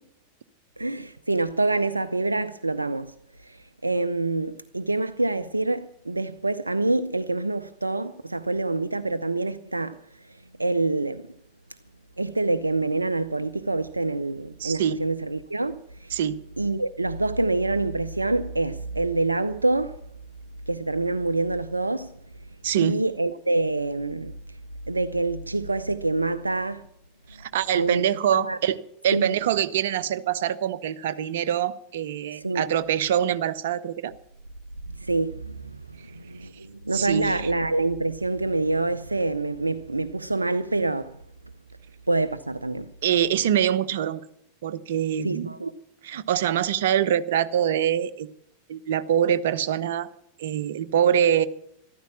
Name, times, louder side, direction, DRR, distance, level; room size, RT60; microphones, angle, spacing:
voice 1, 0.8-3.1 3.4-3.6 3.8-10.0 10.3-11.2 12.2-16.1 16.6-20.0 20.7-22.1 22.8-24.3 24.9-26.9 27.7-28.6 29.1-29.4 32.3-32.7 35.0-41.2 42.1-42.9 45.2-45.7, right 2 dB, 80° right, 0.5 m, -26 dB
voice 2, 14.6-15.0 16.1-16.4 22.6-23.0 27.4-28.8 29.0-34.1 36.9-37.4 43.0-44.2 44.6-45.5 46.0-48.3 48.7-50.1 50.4-51.5, right 10 dB, 55° right, 0.8 m, -24 dB
13.5 x 12.5 x 7.1 m
figure-of-eight pair, 90°, 0 cm